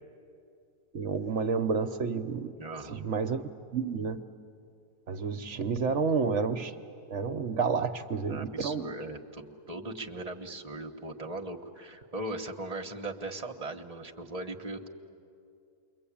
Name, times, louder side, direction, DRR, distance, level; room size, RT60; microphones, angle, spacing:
voice 1, 0.9-2.5 2.9-3.4 3.7-4.2 5.1-6.7 7.1-8.9, right 5 dB, 55° right, 8 dB, 1.0 m, -30 dB
voice 2, 2.6-3.0 8.2-14.9, right 2 dB, 25° right, 4 dB, 1.2 m, -39 dB
28.5 x 23.0 x 8.6 m, 2.5 s
omnidirectional pair, 1.6 m